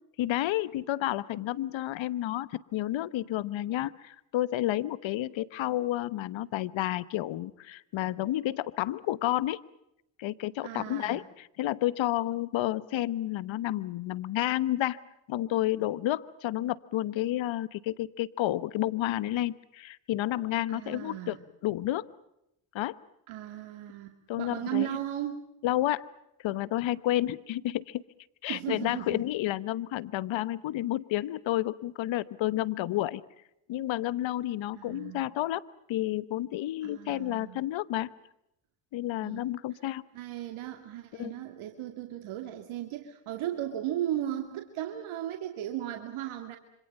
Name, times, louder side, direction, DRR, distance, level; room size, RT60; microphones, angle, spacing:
voice 1, 0.2-9.6 10.2-15.0 15.3-21.4 21.6-22.0 22.7-23.0 24.3-24.9 25.6-26.1 26.4-28.0 28.4-33.2 33.7-35.6 35.9-38.1 38.9-40.0 41.2-41.3, left 14 dB, 65° left, 17 dB, 1.2 m, -30 dB
voice 2, 10.6-11.2 20.7-21.4 23.3-25.4 28.5-29.2 34.7-35.2 36.8-37.6 39.2-39.5 40.1-46.6, right 12 dB, 75° right, 5 dB, 2.5 m, -36 dB
27.0 x 26.0 x 5.5 m, 0.82 s
supercardioid pair, 65°, 49 cm